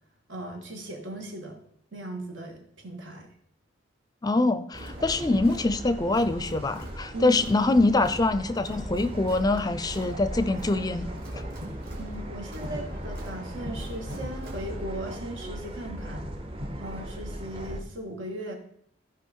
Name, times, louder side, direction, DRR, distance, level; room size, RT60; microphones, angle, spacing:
voice 1, 0.3-1.6 1.9-3.3 7.1-7.4 12.0-16.3 16.8-18.6, right 1 dB, 80° right, 2 dB, 2.2 m, -38 dB
voice 2, 4.2-11.1, left 2 dB, 20° left, 12 dB, 0.5 m, -24 dB
sound 1, 4.7-17.8, equal, 30° right, 0.9 m, -37 dB
Crowd, 4.7-15.0, right 1 dB, 55° right, 2.2 m, -48 dB
15.0 x 5.2 x 4.6 m, 0.67 s
head